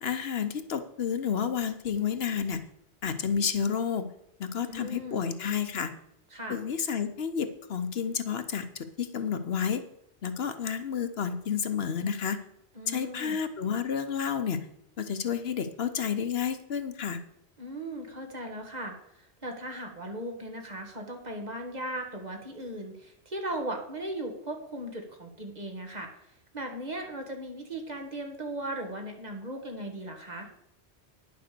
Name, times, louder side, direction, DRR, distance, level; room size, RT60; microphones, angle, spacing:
voice 1, 0.0-2.6 3.0-4.1 4.4-5.9 6.5-8.7 9.0-9.8 10.2-12.4 12.9-14.6 15.0-17.2, left 7 dB, 65° left, 10 dB, 1.1 m, -30 dB
voice 2, 4.7-5.2 6.3-6.6 12.7-13.4 17.6-26.1 26.5-30.5, right 1 dB, 40° right, 3 dB, 1.9 m, -37 dB
10.5 x 6.9 x 6.7 m, 0.74 s
omnidirectional pair, 1.1 m